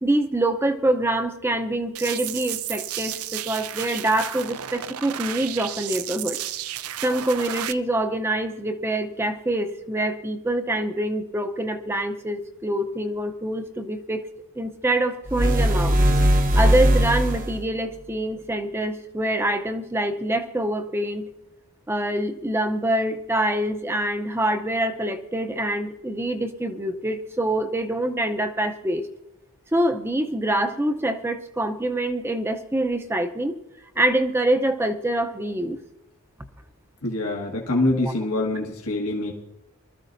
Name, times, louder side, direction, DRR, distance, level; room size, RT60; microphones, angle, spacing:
voice 1, 0.0-6.4 7.0-14.2 14.6-16.0 16.5-21.3 21.9-29.0 29.7-33.6 34.0-35.8 38.0-38.1, right 1 dB, 10° right, 7 dB, 0.6 m, -25 dB
sound 1, 2.0-7.7, right 12 dB, 80° right, 0.5 m, -32 dB
sound 2, 15.3-17.7, equal, 40° right, 0.9 m, -19 dB
voice 2, 37.0-39.3, left 2 dB, 85° left, -1 dB, 1.6 m, -25 dB
24.0 x 13.5 x 2.6 m, 0.90 s
head